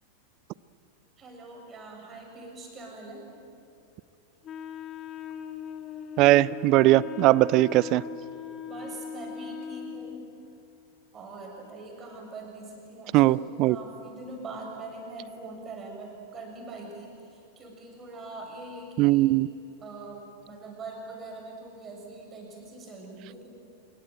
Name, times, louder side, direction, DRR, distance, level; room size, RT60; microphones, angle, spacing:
voice 1, 1.2-3.3 8.6-10.2 11.1-19.3 19.8-23.5, right 2 dB, 25° right, 1 dB, 6.9 m, -43 dB
Wind instrument woodwind instrument, 4.4-10.3, left 7 dB, 30° left, 1.3 m, -40 dB
voice 2, 6.2-8.0 13.1-13.8 19.0-19.5, right 17 dB, 40° right, 22 dB, 0.5 m, -20 dB
25.5 x 22.5 x 9.2 m, 2.7 s
figure-of-eight pair, 90°, 0 cm